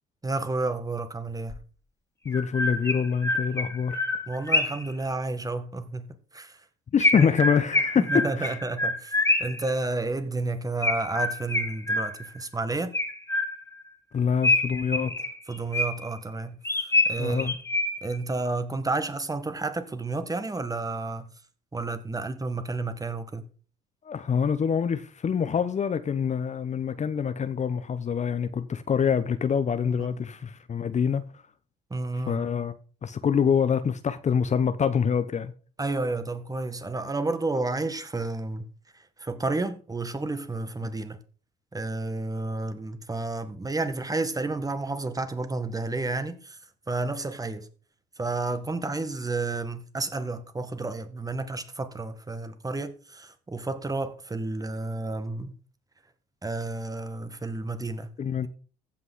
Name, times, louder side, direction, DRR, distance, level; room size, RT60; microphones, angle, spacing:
voice 1, 0.2-1.6 4.3-6.6 7.1-7.3 8.0-12.9 15.5-16.6 17.1-17.5 18.0-21.3 21.7-23.5 30.0-30.2 31.9-32.5 35.8-38.6 39.2-41.2 41.7-46.6 46.9-47.7 48.2-55.6 56.4-58.1, right 3 dB, 20° right, 1.7 m, -31 dB
Chirp tweet, 1.5-1.6 2.3-4.9 7.0-9.7 10.8-12.4 12.9-13.8 14.4-16.2 16.6-18.2, left 2 dB, 15° left, 2.6 m, -26 dB
voice 2, 2.2-4.0 6.9-8.5 14.1-15.1 17.2-17.6 24.0-31.3 32.3-32.7 33.0-35.5 58.2-58.5, left 7 dB, 35° left, 1.0 m, -25 dB
15.5 x 5.9 x 3.8 m
hypercardioid pair, 60°, 20 cm